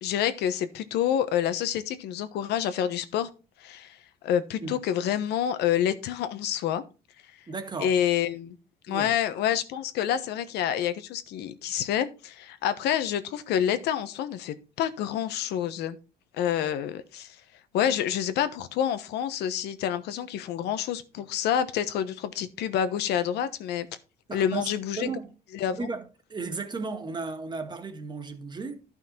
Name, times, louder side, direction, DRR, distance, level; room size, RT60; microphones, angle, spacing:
voice 1, 0.0-3.3 3.6-4.0 4.2-6.8 7.8-8.6 8.9-16.0 16.4-17.4 17.7-23.9 24.3-25.1 25.5-25.8, left 10 dB, 80° left, 1.2 m, -28 dB
voice 2, 7.5-7.9 8.9-9.1 24.3-25.3 25.7-28.8, right 4 dB, 25° right, 1.8 m, -35 dB
12.0 x 5.8 x 4.3 m
cardioid pair, 110°, 17 cm